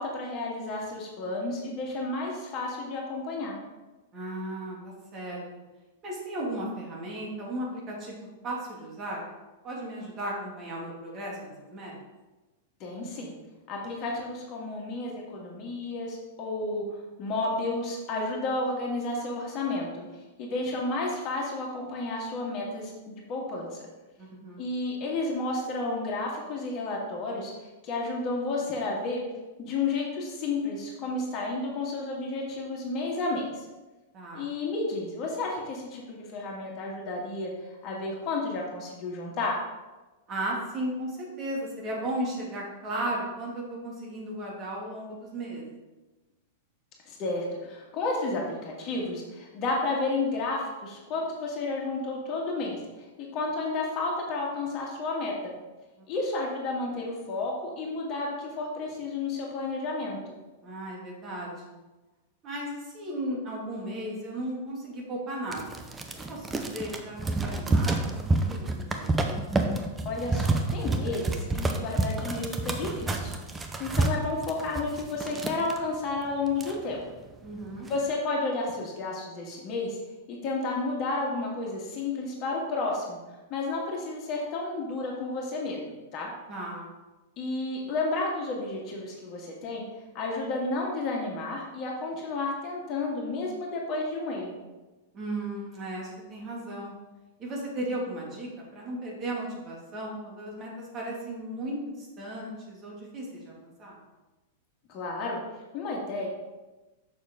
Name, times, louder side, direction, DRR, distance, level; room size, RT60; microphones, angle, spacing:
voice 1, 0.0-3.6 12.8-13.3 13.7-16.8 17.2-20.0 20.4-23.8 24.6-27.5 27.8-29.2 29.6-33.7 34.3-39.6 47.1-55.5 56.1-60.4 70.1-73.3 73.8-77.1 77.9-80.0 80.3-83.2 83.5-86.3 87.4-89.8 90.1-94.6 104.9-105.4 105.7-106.3, left 3 dB, 40° left, -2 dB, 1.8 m, -31 dB
voice 2, 4.1-5.4 6.0-8.1 8.4-9.2 9.6-11.9 24.2-24.6 34.1-34.5 40.3-45.7 56.0-56.1 60.6-61.8 62.4-65.8 66.3-68.1 68.5-69.2 74.2-74.3 77.4-77.9 86.5-86.9 95.1-96.9 97.4-104.0, right 1 dB, 35° right, -3 dB, 2.4 m, -35 dB
sound 1, 65.5-75.8 76.2-76.3 76.5-77.2 77.6-78.0, right 2 dB, 15° right, 0.8 m, -29 dB
6.7 x 6.4 x 3.8 m, 1.1 s
figure-of-eight pair, 100°, 0 cm